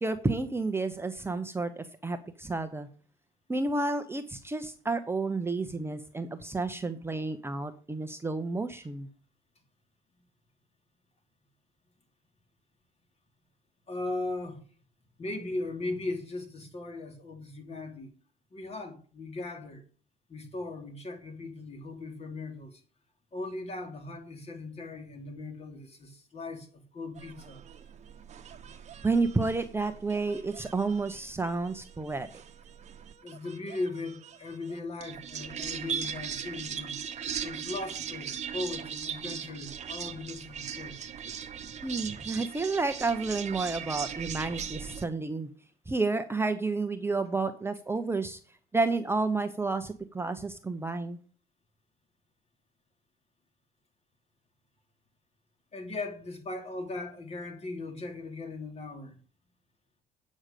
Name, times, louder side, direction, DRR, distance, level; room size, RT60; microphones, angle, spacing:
voice 1, 0.0-2.9 3.5-9.1 29.0-32.3 41.8-45.5 45.9-48.4 48.7-51.2, right 3 dB, 15° right, 0.8 m, -30 dB
voice 2, 13.9-14.7 15.2-18.1 18.5-19.8 20.3-22.8 23.3-27.6 33.2-37.0 37.4-41.1 55.7-59.2, left 2 dB, 40° left, 3.2 m, -38 dB
sound 1, 27.2-45.0, right 7 dB, 45° right, 1.2 m, -39 dB
8.8 x 6.4 x 6.7 m
cardioid pair, 110°, 17 cm